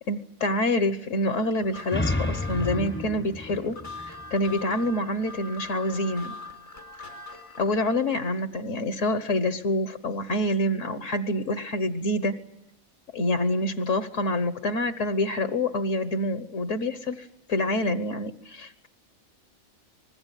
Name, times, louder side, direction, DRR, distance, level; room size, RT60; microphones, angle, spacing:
voice 1, 0.1-6.4 7.6-12.4 13.1-18.9, left 1 dB, 65° left, 12 dB, 1.5 m, -27 dB
sound 1, 1.6-8.2, left 2 dB, 85° left, 4.6 m, -42 dB
sound 2, 1.6-5.1, left 2 dB, 10° left, 0.7 m, -32 dB
25.5 x 20.5 x 9.1 m, 0.79 s
omnidirectional pair, 1.4 m